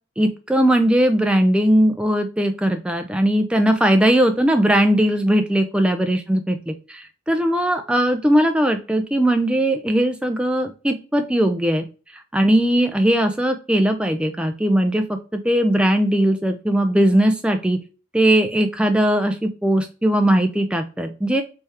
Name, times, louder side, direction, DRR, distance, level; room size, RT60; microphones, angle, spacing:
voice 1, 0.2-11.8 12.3-15.2 15.4-17.8 18.1-21.4, right 1 dB, 5° right, 6 dB, 0.3 m, -19 dB
3.4 x 3.3 x 2.8 m, 0.34 s
head